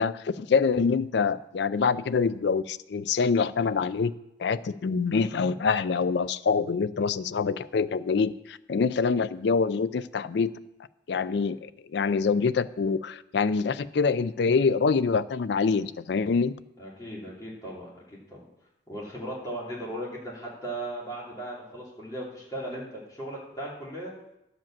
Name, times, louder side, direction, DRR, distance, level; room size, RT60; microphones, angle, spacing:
voice 1, 0.0-4.1 4.4-10.5 11.1-16.5, left 5 dB, 65° left, 16 dB, 0.4 m, -25 dB
voice 2, 16.8-18.5 18.9-24.1, right 1 dB, 20° left, -6 dB, 3.0 m, -37 dB
11.0 x 5.1 x 7.4 m, 0.86 s
head